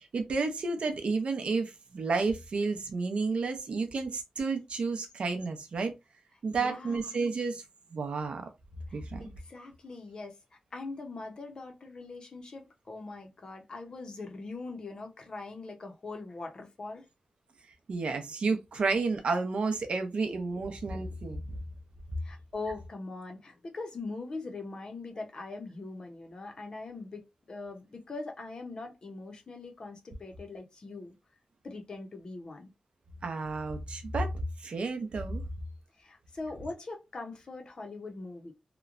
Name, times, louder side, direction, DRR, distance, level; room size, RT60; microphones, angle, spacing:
voice 1, 0.1-5.9 6.4-7.6 7.9-8.5 8.9-9.2 17.9-21.6 33.2-34.3 34.6-35.4, right 4 dB, 60° right, 0.6 m, -31 dB
voice 2, 6.5-7.2 8.9-17.1 20.5-20.6 22.2-31.2 31.6-32.7 35.9-38.5, left 3 dB, 40° left, 0.6 m, -42 dB
2.9 x 2.1 x 2.4 m
wide cardioid pair, 160°, 2 cm